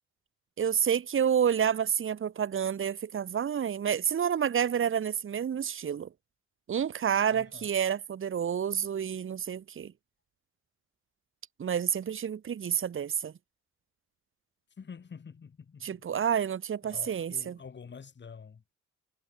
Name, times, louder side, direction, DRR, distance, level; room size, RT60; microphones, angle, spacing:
voice 1, 0.6-6.1 6.7-9.9 11.6-13.3 15.8-17.6, right 8 dB, 45° right, 1.4 m, -29 dB
voice 2, 7.3-7.7 14.8-16.0 16.8-18.6, left 6 dB, 35° left, 2.7 m, -47 dB
cardioid pair, 90°, 30 cm